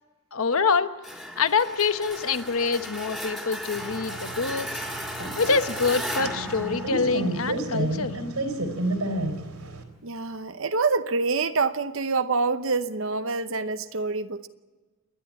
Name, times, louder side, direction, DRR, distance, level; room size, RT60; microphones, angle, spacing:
voice 1, 0.3-0.9 1.4-4.8 5.4-8.2, left 4 dB, 70° left, 1.0 m, -25 dB
sound 1, 1.0-7.7, equal, ahead, 2.3 m, -36 dB
sound 2, 3.8-9.8, right 1 dB, 85° right, 3.7 m, -31 dB
voice 2, 10.0-14.5, right 4 dB, 60° right, 0.9 m, -26 dB
29.0 x 11.0 x 8.5 m
head